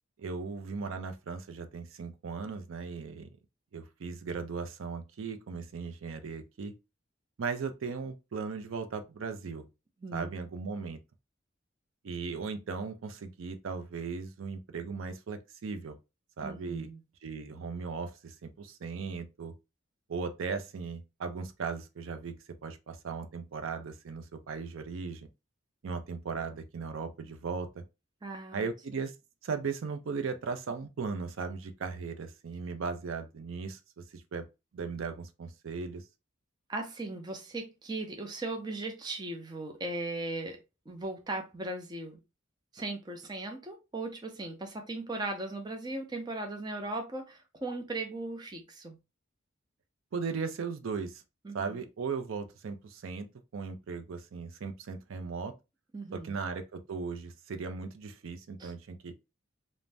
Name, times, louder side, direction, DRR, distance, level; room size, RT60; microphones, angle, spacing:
voice 1, 0.2-3.3 3.7-6.7 7.4-9.6 10.1-11.0 12.0-16.0 16.4-16.9 17.2-19.5 20.1-22.4 22.6-25.3 25.8-27.8 28.5-29.1 29.4-34.5 34.7-36.1 50.1-51.2 51.5-53.3 53.5-55.5 56.1-59.1, right 5 dB, 75° right, 0.4 m, -37 dB
voice 2, 10.0-10.3 16.4-17.0 28.2-28.7 36.7-40.6 40.9-42.2 42.7-49.0 51.4-51.8 55.9-56.4 58.6-58.7, right 2 dB, 20° right, 0.4 m, -38 dB
2.5 x 2.0 x 3.2 m
head